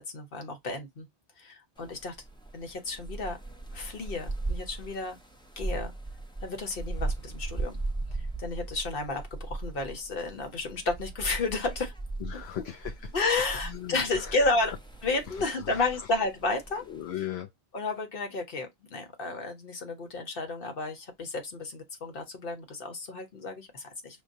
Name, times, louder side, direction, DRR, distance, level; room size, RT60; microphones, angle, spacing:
voice 1, 0.1-1.1 1.4-2.2 2.5-3.4 3.7-5.2 5.6-5.9 6.4-7.8 8.2-11.9 12.3-12.4 13.1-14.7 15.0-16.8 17.7-24.2, left 3 dB, 60° left, 1.3 m, -32 dB
sound 1, 1.8-17.1, right 2 dB, 5° left, 0.6 m, -38 dB
voice 2, 12.2-13.1 13.6-14.4 15.3-15.8 16.9-17.5, left 11 dB, 75° left, 0.9 m, -38 dB
6.5 x 2.3 x 2.6 m
omnidirectional pair, 1.1 m